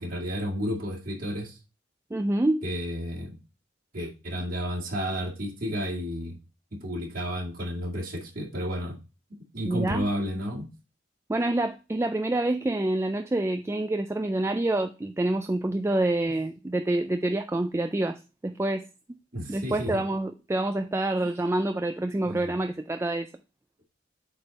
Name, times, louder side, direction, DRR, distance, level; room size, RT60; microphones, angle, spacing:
voice 1, 0.0-1.6 2.6-3.4 3.9-6.4 6.7-9.0 9.5-10.7 19.3-20.0 21.2-21.3 22.2-22.4, equal, 45° right, 2.2 m, -32 dB
voice 2, 2.1-2.6 9.7-10.1 11.3-18.8 19.5-23.3, right 2 dB, 15° right, 0.3 m, -27 dB
8.1 x 3.5 x 4.0 m
head